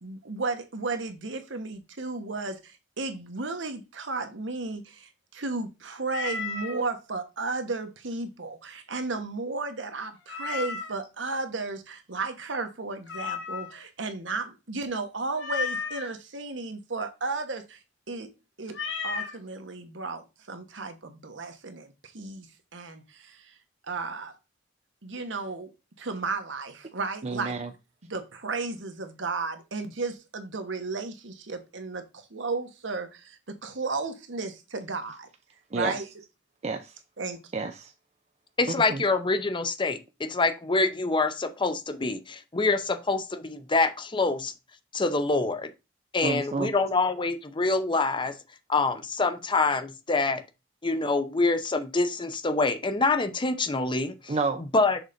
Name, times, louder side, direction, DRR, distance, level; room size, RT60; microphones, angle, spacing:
voice 1, 0.0-17.8 18.1-18.3 18.6-18.8 19.0-22.5 22.7-23.5 23.8-24.3 25.0-25.7 26.0-27.5 28.0-35.3 35.7-36.0 37.2-37.4, right 3 dB, 75° right, 1.2 m, -34 dB
Meow, 6.1-6.8 10.3-11.1 13.1-13.9 15.4-16.1 18.7-19.4, left 5 dB, 80° left, 1.5 m, -33 dB
voice 2, 27.2-27.7 35.7-36.0 36.6-37.0 37.5-37.9 38.7-39.0 46.2-46.7 54.3-54.6, right 3 dB, 35° right, 0.5 m, -30 dB
voice 3, 38.6-44.5 44.9-45.7 46.1-48.4 48.7-50.4 50.8-54.3 54.7-55.0, left 3 dB, 25° left, 0.7 m, -26 dB
6.5 x 3.9 x 5.1 m
head